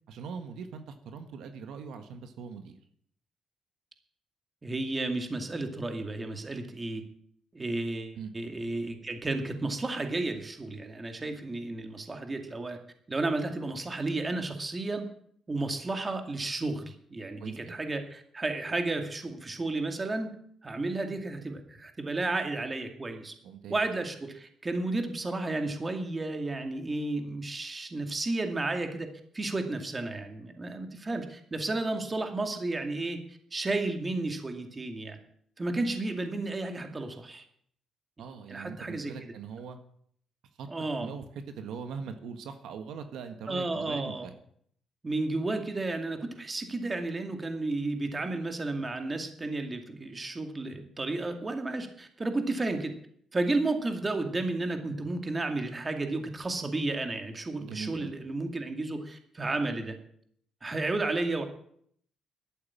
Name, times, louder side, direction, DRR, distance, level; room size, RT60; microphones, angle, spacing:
voice 1, 0.1-2.8 8.1-8.3 17.4-17.8 23.4-23.8 38.2-39.8 40.6-40.7 41.0-44.3 57.6-58.1, right 6 dB, 80° right, 7 dB, 1.6 m, -41 dB
voice 2, 4.6-7.0 7.5-12.8 13.1-15.1 15.5-20.3 20.6-23.3 23.7-33.2 33.5-35.2 35.6-37.4 38.5-39.1 40.7-41.1 43.5-44.3 45.0-52.9 53.3-60.0 60.6-61.4, right 2 dB, 25° right, 6 dB, 2.3 m, -32 dB
12.0 x 8.7 x 8.6 m, 0.65 s
cardioid pair, 90°, 0 cm